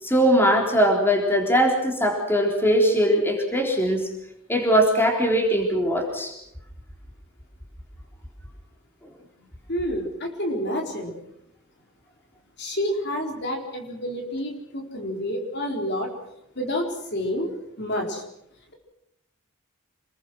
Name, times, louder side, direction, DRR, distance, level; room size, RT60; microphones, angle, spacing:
voice 1, 0.0-4.1 4.5-6.3, equal, 10° left, 2 dB, 3.8 m, -21 dB
voice 2, 9.7-11.2 12.6-16.1 16.6-17.5 17.8-18.2, equal, 55° left, 2 dB, 4.2 m, -29 dB
27.5 x 21.5 x 6.3 m, 0.81 s
head